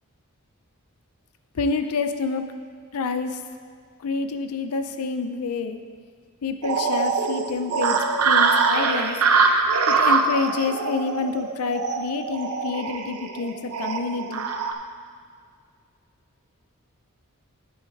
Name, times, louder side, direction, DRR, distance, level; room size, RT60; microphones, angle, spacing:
voice 1, 1.5-2.4 2.9-3.4 4.0-5.8 6.4-9.2 9.9-14.5, left 4 dB, 90° left, 8 dB, 0.5 m, -28 dB
sound 1, 6.6-14.7, right 4 dB, 80° right, 0.7 m, -23 dB
11.0 x 7.9 x 3.5 m, 2.1 s
head